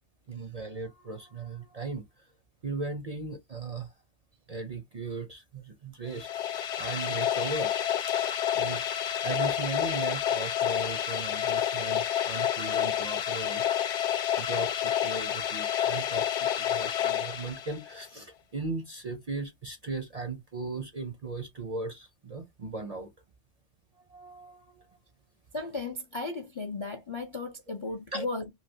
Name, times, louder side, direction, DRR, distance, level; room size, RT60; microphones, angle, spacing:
voice 1, 0.3-2.3 2.6-3.9 4.5-7.8 8.1-8.2 8.5-13.7 14.4-23.1 24.1-24.8 28.1-28.2, right 3 dB, 45° right, 0.5 m, -37 dB
sound 1, 6.1-18.0, left 10 dB, 70° left, 0.8 m, -29 dB
voice 2, 25.5-28.5, left 3 dB, 45° left, 0.4 m, -35 dB
3.1 x 2.7 x 2.6 m
omnidirectional pair, 1.2 m